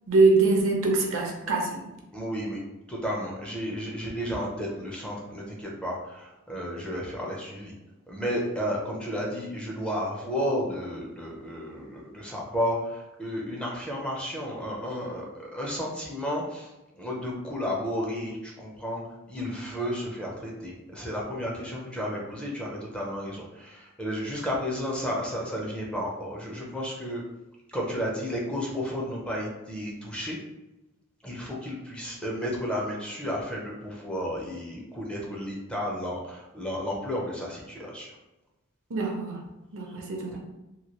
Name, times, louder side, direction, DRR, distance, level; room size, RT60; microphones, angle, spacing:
voice 1, 0.1-1.8 38.9-39.4 39.7-40.4, right 3 dB, 65° right, 0 dB, 0.7 m, -23 dB
voice 2, 2.1-2.6 2.9-7.7 8.1-16.7 17.0-19.0 19.3-27.2 27.7-30.4 31.2-38.1 39.9-40.0, equal, 5° left, -3 dB, 0.5 m, -32 dB
2.9 x 2.7 x 2.9 m, 0.99 s
head